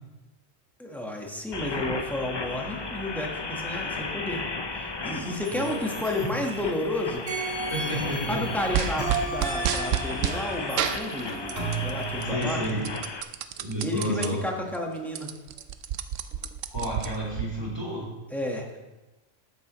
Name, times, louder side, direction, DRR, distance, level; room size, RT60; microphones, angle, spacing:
voice 1, 0.8-4.4 4.7-7.2 8.3-12.6 13.8-15.3 18.3-18.7, left 1 dB, ahead, 0 dB, 1.3 m, -32 dB
sound 1, 1.5-13.2, left 3 dB, 45° left, 0.3 m, -35 dB
sound 2, 5.4-6.8 7.3-12.3, right 4 dB, 55° right, 2.2 m, -34 dB
voice 2, 5.5-6.1 7.7-8.4 8.7-9.0 12.2-12.9 13.6-14.4 16.7-18.1, right 1 dB, 20° right, -5 dB, 3.2 m, -31 dB
sound 3, 8.7-10.4 10.8-11.9 12.2-14.3 14.7-14.8 15.0-17.5, right 9 dB, 90° right, 0.9 m, -30 dB
13.0 x 9.1 x 3.1 m, 1.1 s
omnidirectional pair, 1.3 m